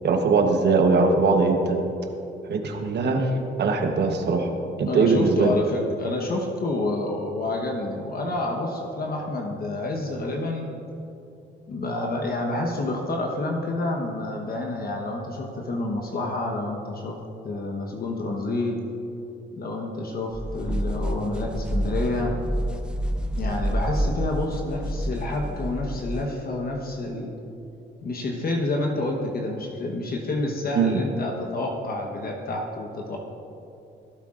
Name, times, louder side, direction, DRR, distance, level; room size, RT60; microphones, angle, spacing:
voice 1, 0.0-1.8 2.5-3.3 3.6-4.5 4.8-5.5 30.7-31.0, right 4 dB, 60° right, 4 dB, 1.1 m, -21 dB
voice 2, 4.9-10.7 11.7-17.2 17.4-18.8 19.5-22.3 23.4-27.3 28.0-33.2, left 2 dB, 50° left, 1 dB, 1.1 m, -28 dB
sound 1, 20.3-26.3, equal, 5° right, 0.5 m, -28 dB
16.0 x 8.4 x 2.5 m, 2.7 s
cardioid pair, 90°, 20 cm